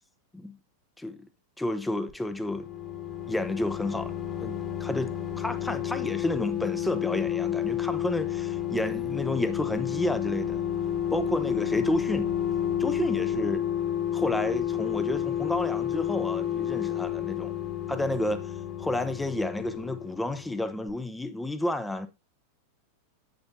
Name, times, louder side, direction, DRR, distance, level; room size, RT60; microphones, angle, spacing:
voice 1, 1.6-2.7 3.3-4.1 4.4-10.6 11.1-12.3 12.8-13.6 14.1-17.5 17.9-18.5 18.8-22.1, left 1 dB, 5° left, 0.9 m, -31 dB
sound 1, 2.1-20.6 20.9-21.0, left 10 dB, 25° left, 1.8 m, -31 dB
8.8 x 8.4 x 2.7 m
figure-of-eight pair, 90°, 0 cm